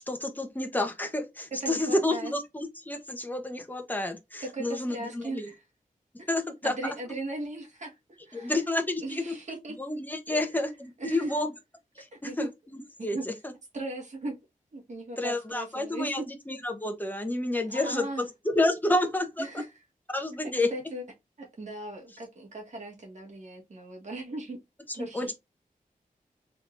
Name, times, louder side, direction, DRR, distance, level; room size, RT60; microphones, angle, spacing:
voice 1, 0.0-5.5 6.3-6.7 8.3-9.4 9.8-11.5 11.9-13.5 15.2-19.6 20.1-20.7 24.9-25.3, left 1 dB, 10° left, 0.9 m, -30 dB
voice 2, 1.6-2.3 4.4-5.6 6.2-6.3 6.6-8.6 9.0-9.7 10.3-10.6 11.0-11.3 12.1-12.5 13.0-13.2 13.7-14.4 14.7-16.2 17.7-18.2 19.4-19.7 20.7-21.0 21.4-24.6 24.9-25.3, right 2 dB, 55° right, 1.7 m, -38 dB
3.7 x 3.5 x 2.5 m
wide cardioid pair, 115°, 14 cm